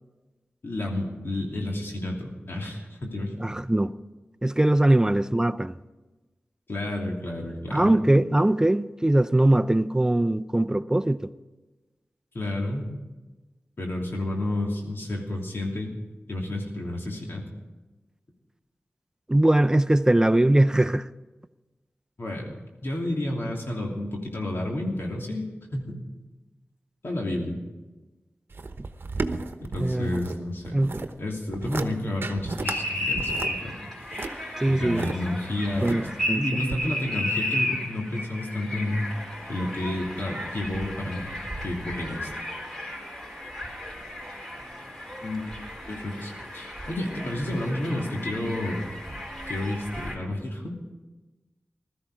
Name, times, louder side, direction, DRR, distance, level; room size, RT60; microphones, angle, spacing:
voice 1, 0.6-3.5 6.7-7.9 12.3-12.9 13.8-15.9 16.3-17.4 22.2-25.5 25.7-26.0 27.0-27.6 29.7-30.8 31.2-33.7 34.7-36.1 36.3-39.1 39.5-41.3 41.6-42.3 45.2-45.5 45.9-48.8 49.5-50.7, left 1 dB, 60° left, 2.9 m, -30 dB
voice 2, 3.4-3.9 4.4-5.8 7.7-11.3 19.3-21.1 29.8-30.2 30.7-31.1 34.6-35.0 35.8-36.6, right 1 dB, 15° right, 0.5 m, -21 dB
sound 1, 28.5-30.4 30.6-31.1 31.5-31.9 32.2-32.8 33.1-35.1 35.7-36.3 36.7-36.8, right 3 dB, 60° right, 1.0 m, -33 dB
sound 2, 32.6-50.2, left 1 dB, 5° left, 4.4 m, -34 dB
16.0 x 13.5 x 5.0 m
wide cardioid pair, 65°, 4 cm